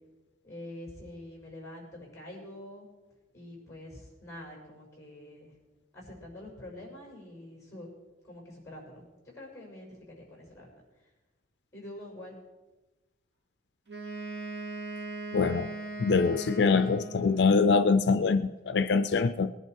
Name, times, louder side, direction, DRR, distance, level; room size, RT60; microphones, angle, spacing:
voice 1, 0.4-2.9 3.3-5.5 5.9-7.9 8.2-9.0 9.3-10.7 11.7-12.3, left 1 dB, 15° left, 0 dB, 5.9 m, -46 dB
Wind instrument woodwind instrument, 13.9-17.6, right 3 dB, 75° right, 2.2 m, -39 dB
voice 2, 15.3-15.7 16.0-19.5, left 4 dB, 75° left, 11 dB, 0.5 m, -24 dB
20.5 x 11.0 x 4.6 m, 1.1 s
head